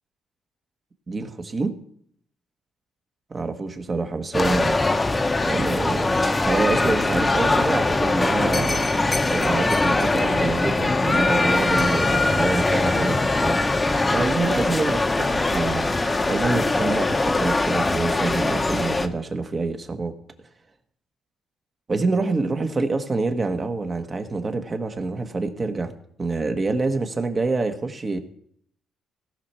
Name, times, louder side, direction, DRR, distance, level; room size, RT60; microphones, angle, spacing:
voice 1, 1.1-1.8 3.3-4.8 5.4-6.1 6.4-8.8 9.3-13.6 14.1-15.8 16.3-20.1 21.9-25.9 26.2-28.2, right 3 dB, 35° right, 6 dB, 1.4 m, -26 dB
sound 1, 4.3-19.1, left 2 dB, 20° left, 0.9 m, -22 dB
17.5 x 6.0 x 4.4 m, 0.67 s
cardioid pair, 90°, 0 cm